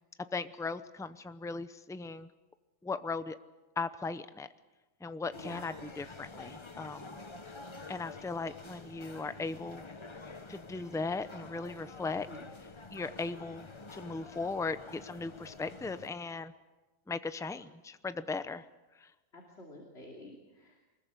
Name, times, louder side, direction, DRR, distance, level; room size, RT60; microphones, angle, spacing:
voice 1, 0.3-2.3 2.8-3.4 3.8-4.5 5.0-7.1 7.9-9.8 10.5-12.3 12.9-16.5 17.1-18.6, left 4 dB, 5° left, 12 dB, 0.5 m, -38 dB
voice 2, 5.3-5.7 12.1-12.4 19.3-20.8, left 2 dB, 55° left, 0 dB, 3.1 m, -49 dB
sound 1, 5.3-16.1, left 3 dB, 25° left, 0.9 m, -48 dB
24.0 x 21.0 x 8.2 m, 1.2 s
omnidirectional pair, 1.4 m